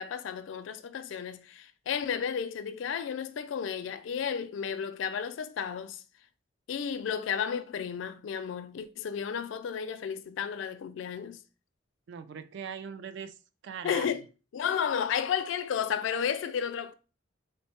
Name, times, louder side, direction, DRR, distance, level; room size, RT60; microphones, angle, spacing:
voice 1, 0.0-6.0 6.7-11.4 13.8-14.2 14.5-16.9, left 7 dB, 70° left, 0.3 m, -32 dB
voice 2, 12.1-13.4 13.6-14.2, right 7 dB, 65° right, 0.3 m, -40 dB
3.4 x 2.1 x 4.2 m
head